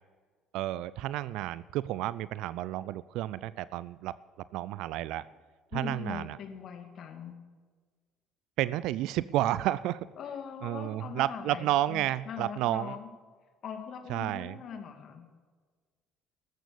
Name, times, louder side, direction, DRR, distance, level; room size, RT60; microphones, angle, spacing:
voice 1, 0.5-4.1 4.5-5.2 5.7-6.4 8.6-10.1 10.6-13.0 14.1-14.6, right 14 dB, 65° right, 18 dB, 0.4 m, -31 dB
voice 2, 5.7-7.4 10.2-13.1 13.6-15.3, left 7 dB, 55° left, 6 dB, 2.3 m, -41 dB
14.0 x 13.0 x 7.0 m, 1.5 s
hypercardioid pair, 60°, 0 cm